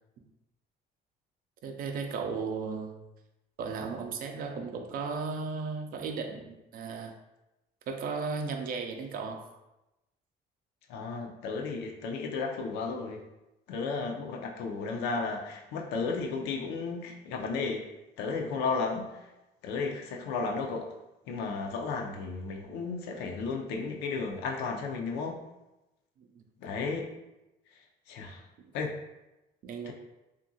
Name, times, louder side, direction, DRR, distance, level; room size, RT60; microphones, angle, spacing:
voice 1, 1.6-3.0 3.6-7.1 7.9-9.5 26.2-26.4 28.6-28.7 29.6-29.9, right 4 dB, 60° right, 5 dB, 0.4 m, -35 dB
voice 2, 10.9-13.2 13.7-17.8 18.2-19.3 19.6-20.9 21.3-25.4 26.6-27.1 27.7-27.8 28.1-28.5 28.7-28.9 29.9-30.0, left 4 dB, 90° left, 1 dB, 0.5 m, -33 dB
2.8 x 2.5 x 2.6 m, 0.97 s
cardioid pair, 110°, 17 cm